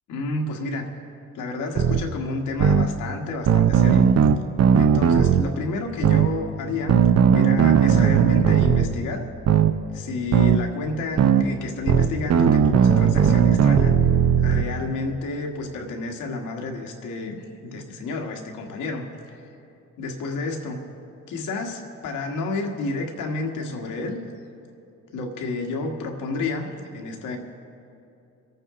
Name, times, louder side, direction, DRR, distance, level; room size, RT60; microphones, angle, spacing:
voice 1, 0.1-0.9 1.3-4.1 4.8-7.0 7.3-9.3 9.9-14.0 14.4-19.4 20.0-20.8 21.3-24.2 25.1-27.4, left 3 dB, 85° left, 2 dB, 1.7 m, -30 dB
sound 1, 1.8-2.0 2.6-2.9 3.5-5.4 6.0-6.3 6.9-8.9 9.5-9.7 10.3-10.6 11.2-11.4 11.9-14.7, right 8 dB, 55° right, 0.7 m, -17 dB
25.5 x 9.0 x 3.8 m, 2.8 s
cardioid pair, 90°, 30 cm